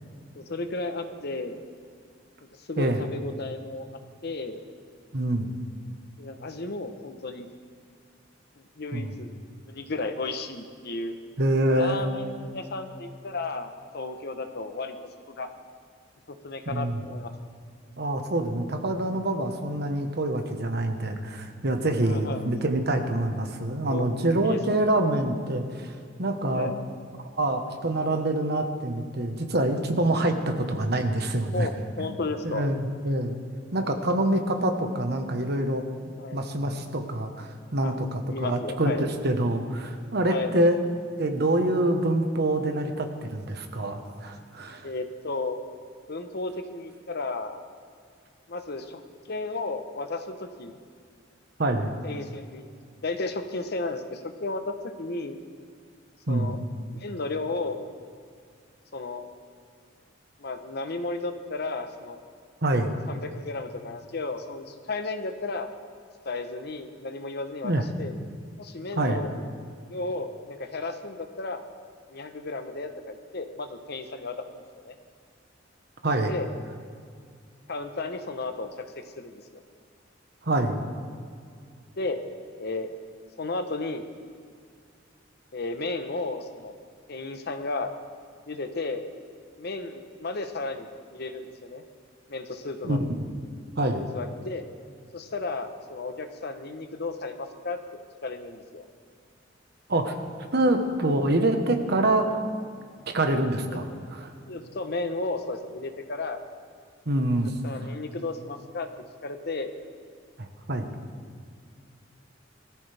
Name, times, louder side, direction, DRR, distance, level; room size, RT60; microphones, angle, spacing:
voice 1, 0.3-1.6 2.6-3.9 4.2-4.6 6.2-7.5 8.6-9.3 9.7-11.2 11.7-15.0 15.3-15.5 16.3-17.3 22.0-22.5 23.9-24.1 24.3-24.9 26.5-26.8 29.9-30.1 31.5-32.7 36.2-36.5 37.8-38.0 38.3-39.1 40.3-40.5 44.8-45.6 46.1-47.6 48.5-49.0 49.3-50.7 52.0-52.7 53.0-55.4 56.3-56.6 56.9-57.8 58.9-59.3 60.4-62.2 63.1-65.7 66.2-68.1 68.6-69.3 69.9-71.6 72.1-74.9 76.3-76.5 77.7-78.7 79.0-79.6 82.0-82.2 82.6-82.9 83.4-84.1 85.5-86.7 87.1-87.9 88.5-89.0 89.6-91.8 92.3-93.0 94.1-94.7 95.1-97.8 98.2-98.8 103.7-104.1 104.5-106.4 107.6-108.9 109.2-109.7, left 3 dB, 55° left, 7 dB, 1.0 m, -33 dB
voice 2, 5.1-5.5 8.9-9.1 11.4-12.0 16.7-17.0 18.0-26.7 27.4-31.7 32.0-32.2 32.4-33.4 33.7-35.8 36.3-40.8 41.2-44.9 51.6-51.9 56.3-56.6 62.6-62.9 67.6-67.8 69.0-69.2 76.0-76.3 80.4-80.8 92.8-93.0 93.8-94.1 99.9-100.1 100.5-102.4 103.1-103.8 104.1-104.3 107.1-107.5 110.4-110.9, right 1 dB, 60° right, 5 dB, 1.3 m, -26 dB
20.0 x 13.5 x 3.5 m, 2.2 s
head